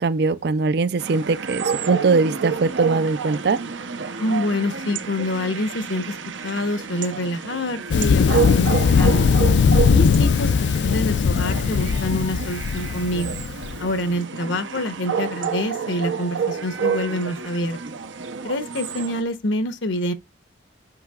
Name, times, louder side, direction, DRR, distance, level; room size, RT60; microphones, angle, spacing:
voice 1, 0.0-3.6, right 4 dB, 60° right, 0.4 m, -21 dB
sound 1, 1.0-19.2, right 6 dB, 85° right, 0.8 m, -29 dB
voice 2, 4.2-6.2 6.4-9.3 9.8-13.4 13.8-17.8 18.4-20.1, left 1 dB, 85° left, 1.0 m, -26 dB
Thunder, 7.9-13.8, left 6 dB, 65° left, 0.3 m, -19 dB
7.8 x 5.5 x 2.4 m
head